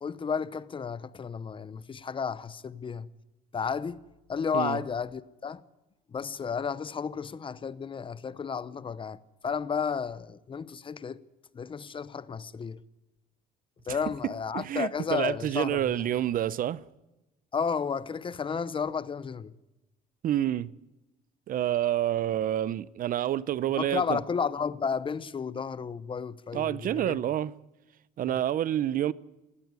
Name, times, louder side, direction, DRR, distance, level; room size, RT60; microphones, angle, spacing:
voice 1, 0.0-3.1 3.5-4.0 4.3-5.6 6.1-11.2 11.5-12.8 13.8-15.8 17.5-19.5 23.8-27.2 28.3-28.4, left 6 dB, 30° left, 0.8 m, -32 dB
voice 2, 14.5-16.8 20.2-20.7 21.5-24.2 26.5-27.5 28.2-29.1, right 11 dB, 55° right, 0.7 m, -28 dB
17.5 x 16.5 x 9.6 m
cardioid pair, 110°, 17 cm